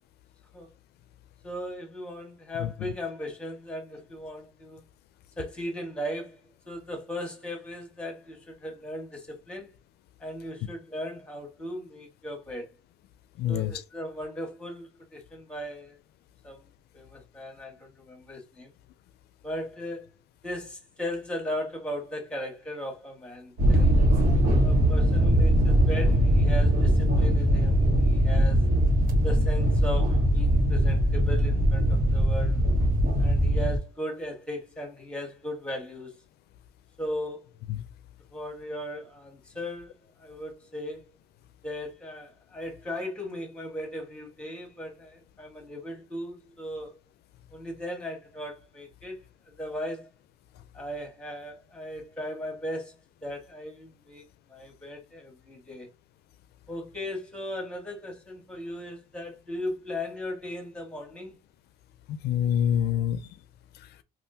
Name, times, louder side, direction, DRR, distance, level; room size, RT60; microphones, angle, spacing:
voice 1, 1.4-4.8 5.4-9.7 10.2-12.7 13.5-16.0 16.4-16.6 16.9-18.7 19.4-20.1 20.4-23.9 24.6-28.7 29.2-32.6 33.2-36.2 37.0-37.5 38.3-41.1 41.6-47.0 47.5-49.2 49.6-50.1 50.7-52.9 53.2-55.9 56.7-61.4, equal, 5° left, 1.5 m, -37 dB
voice 2, 2.6-2.9 13.4-13.7 37.7-37.8 62.1-63.3 63.7-63.9, left 9 dB, 75° left, 0.4 m, -27 dB
sound 1, 23.6-33.8, equal, 60° right, 1.3 m, -21 dB
3.6 x 2.4 x 2.7 m
cardioid pair, 110°, 17 cm